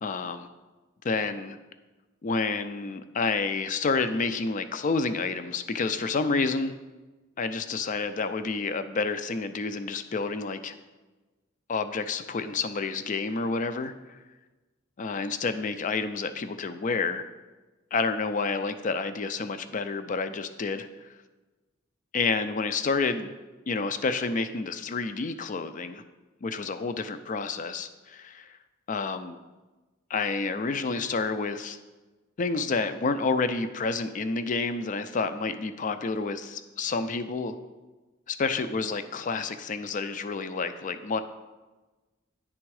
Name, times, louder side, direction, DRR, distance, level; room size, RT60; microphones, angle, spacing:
voice 1, 0.0-0.5 1.0-1.6 2.2-6.7 7.4-10.7 11.7-14.2 15.0-17.2 17.9-21.1 22.1-23.3 23.7-26.0 26.4-28.6 28.9-29.4 30.1-31.8 32.4-37.6 38.4-41.2, left 4 dB, 40° left, 10 dB, 0.4 m, -29 dB
9.8 x 3.5 x 4.7 m, 1.2 s
head